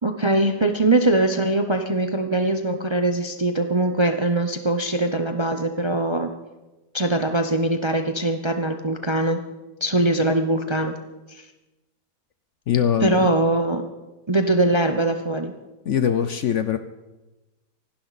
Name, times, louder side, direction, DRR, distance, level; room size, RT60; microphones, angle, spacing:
voice 1, 0.0-6.3 6.9-9.4 9.8-10.9 11.3-11.5 13.0-13.9 14.3-15.5, right 2 dB, 25° right, 6 dB, 0.6 m, -22 dB
voice 2, 12.7-13.3 15.9-16.8, left 8 dB, 60° left, 10 dB, 0.9 m, -22 dB
27.0 x 11.5 x 4.2 m, 1.1 s
omnidirectional pair, 1.7 m